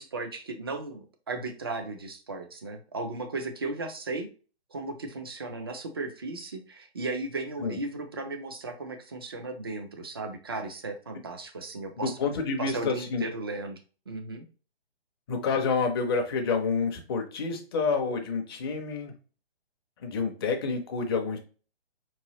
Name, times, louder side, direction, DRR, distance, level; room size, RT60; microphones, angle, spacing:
voice 1, 0.0-4.3 4.7-12.2 12.6-13.8 14.1-14.4, right 3 dB, 25° right, 5 dB, 0.3 m, -36 dB
voice 2, 12.0-13.2 15.3-19.1 20.0-21.4, left 4 dB, 25° left, 3 dB, 0.6 m, -28 dB
4.4 x 3.1 x 2.8 m, 0.37 s
figure-of-eight pair, 135°, 32 cm